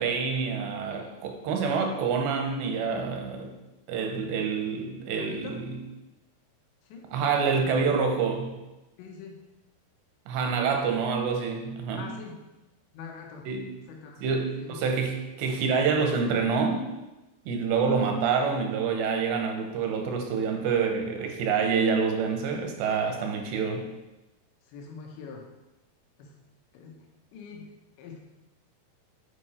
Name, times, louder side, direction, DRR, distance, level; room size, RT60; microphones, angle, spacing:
voice 1, 0.0-3.5 3.9-5.8 7.1-8.6 10.3-12.0 13.5-13.7 14.2-16.8 17.5-23.9, right 5 dB, 80° right, 3 dB, 3.0 m, -27 dB
voice 2, 5.1-5.6 6.8-7.1 7.6-7.8 9.0-9.4 12.0-12.4 12.9-13.5 13.9-14.8 24.7-25.5 26.2-26.4 26.7-27.1 27.3-28.2, left 5 dB, 85° left, 1 dB, 3.3 m, -44 dB
8.6 x 4.8 x 4.3 m, 1.0 s
omnidirectional pair, 5.0 m